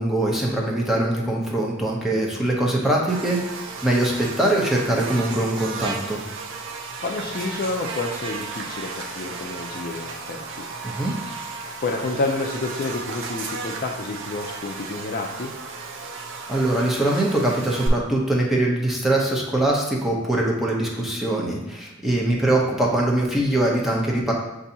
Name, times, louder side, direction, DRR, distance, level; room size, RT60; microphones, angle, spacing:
voice 1, 0.0-6.2 10.8-11.1 16.5-24.3, right 1 dB, ahead, -3 dB, 0.7 m, -22 dB
Buzz, 3.1-17.9, right 4 dB, 65° right, 0.5 m, -34 dB
voice 2, 7.0-10.6 11.8-15.5, left 3 dB, 45° left, 1 dB, 0.4 m, -29 dB
7.0 x 2.6 x 2.7 m, 0.97 s
head